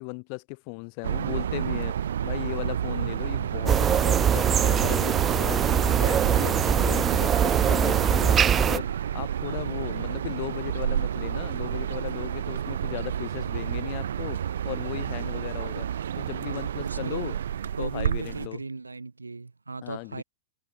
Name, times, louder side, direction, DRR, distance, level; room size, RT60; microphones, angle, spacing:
voice 1, 0.0-17.4 17.8-18.6 19.8-20.2, left 40 dB or more, 45° left, 2.5 m, -37 dB
sound 1, 1.0-18.5, right 9 dB, 65° right, 2.4 m, -30 dB
sound 2, 3.7-8.8, right 8 dB, 20° right, 0.8 m, -22 dB
voice 2, 9.5-9.9 16.4-17.3 17.7-20.2, right 3 dB, 85° right, 3.7 m, -37 dB
figure-of-eight pair, 105°, 0 cm